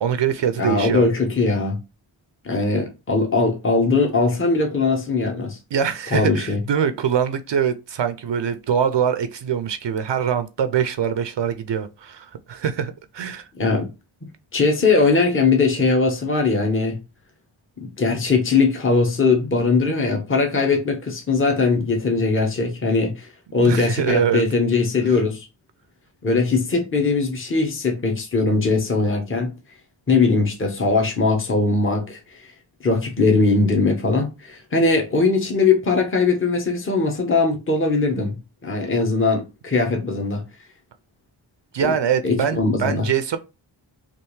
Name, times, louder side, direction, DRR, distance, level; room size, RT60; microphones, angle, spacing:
voice 1, 0.0-1.1 5.7-13.5 23.6-24.4 41.7-43.4, right 8 dB, 60° right, 0.5 m, -23 dB
voice 2, 0.6-1.8 2.4-5.6 6.1-6.6 13.6-13.9 14.5-17.0 17.8-25.5 26.2-29.5 30.1-32.4 32.8-38.4 38.6-40.4 41.8-41.9 42.2-43.1, left 3 dB, 25° left, 0.9 m, -20 dB
3.3 x 2.5 x 3.1 m
cardioid pair, 40°, 49 cm